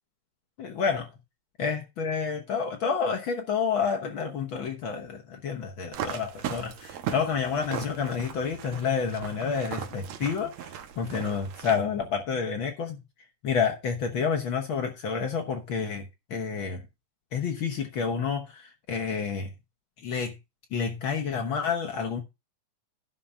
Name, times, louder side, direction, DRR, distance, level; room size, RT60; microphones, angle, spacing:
voice 1, 0.6-1.1 1.6-13.0 13.4-16.8 17.3-19.5 20.0-20.4 20.7-22.2, left 6 dB, 60° left, 1.5 m, -29 dB
sound 1, 5.9-11.8, right 9 dB, 70° right, 2.3 m, -38 dB
11.0 x 3.8 x 6.9 m
omnidirectional pair, 3.4 m